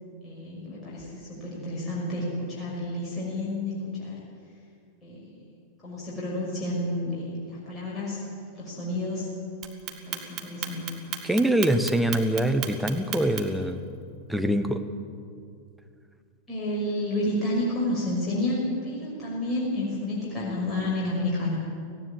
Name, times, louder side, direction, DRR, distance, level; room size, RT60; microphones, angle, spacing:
voice 1, 0.2-4.2 5.0-5.4 5.8-8.2 8.5-9.3 9.9-11.0 16.5-21.6, left 1 dB, 20° left, -6 dB, 5.8 m, -30 dB
Clock, 9.6-13.6, right 12 dB, 35° right, 2.0 m, -34 dB
voice 2, 11.2-13.8 14.3-14.8, right 1 dB, ahead, 6 dB, 1.2 m, -24 dB
18.5 x 16.5 x 8.6 m, 2.4 s
figure-of-eight pair, 90°, 0 cm